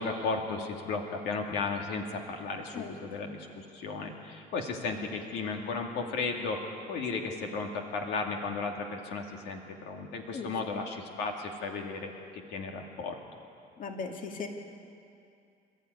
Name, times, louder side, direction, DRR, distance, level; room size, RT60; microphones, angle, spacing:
voice 1, 0.0-13.2, left 4 dB, 85° left, 2 dB, 2.2 m, -35 dB
voice 2, 2.7-3.3 10.3-10.5 13.8-14.5, left 5 dB, 50° left, 3 dB, 2.3 m, -39 dB
27.0 x 13.0 x 9.5 m, 2.5 s
cardioid pair, 110°, 17 cm